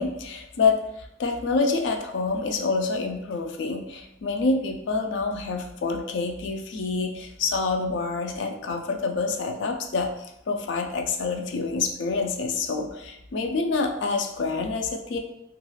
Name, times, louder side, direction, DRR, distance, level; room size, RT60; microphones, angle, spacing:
voice 1, 0.0-10.1 10.5-15.2, left 4 dB, 85° left, 4 dB, 0.4 m, -27 dB
3.0 x 2.4 x 2.3 m, 0.83 s
head